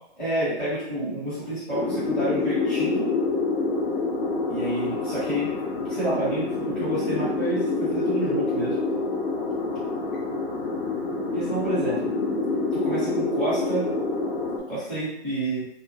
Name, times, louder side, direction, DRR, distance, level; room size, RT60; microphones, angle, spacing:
voice 1, 0.2-3.1 4.5-5.5 5.9-8.8 11.3-12.1 12.7-13.8 14.7-15.7, right 1 dB, 5° left, -14 dB, 0.6 m, -29 dB
sound 1, 1.7-14.6, left 3 dB, 50° left, 0.7 m, -27 dB
2.3 x 2.1 x 2.7 m, 0.79 s
hypercardioid pair, 145°, 34 cm